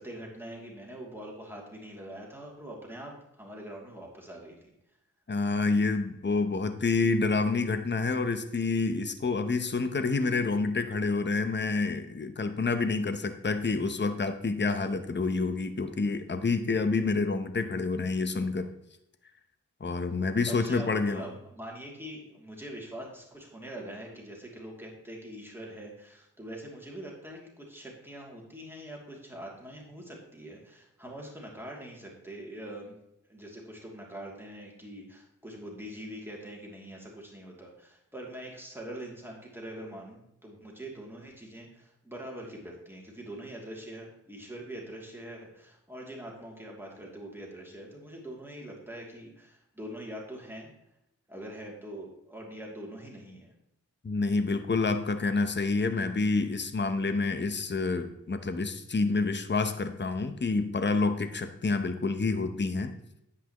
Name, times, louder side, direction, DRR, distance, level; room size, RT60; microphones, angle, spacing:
voice 1, 0.0-4.5 20.5-32.9 33.3-50.7 51.3-53.5, right 1 dB, 5° right, -2 dB, 2.7 m, -43 dB
voice 2, 5.3-18.7 19.8-21.3 54.0-62.9, left 3 dB, 35° left, 9 dB, 0.8 m, -28 dB
9.9 x 8.5 x 3.0 m, 0.81 s
cardioid pair, 55°, 32 cm